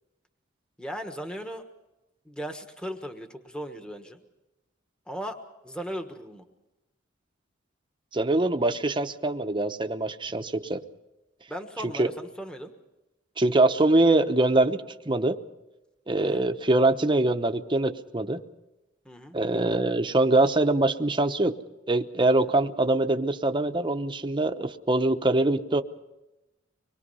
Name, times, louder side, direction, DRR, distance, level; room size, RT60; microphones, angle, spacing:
voice 1, 0.8-1.6 2.2-4.2 5.1-5.4 5.6-6.4 11.5-12.7 16.2-16.4 19.0-19.4, equal, 5° left, 5 dB, 1.3 m, -37 dB
voice 2, 8.1-10.8 12.0-12.1 13.4-15.4 16.1-18.4 19.3-21.5 21.9-25.8, right 2 dB, 25° right, 8 dB, 0.9 m, -23 dB
25.0 x 22.0 x 5.6 m, 0.98 s
head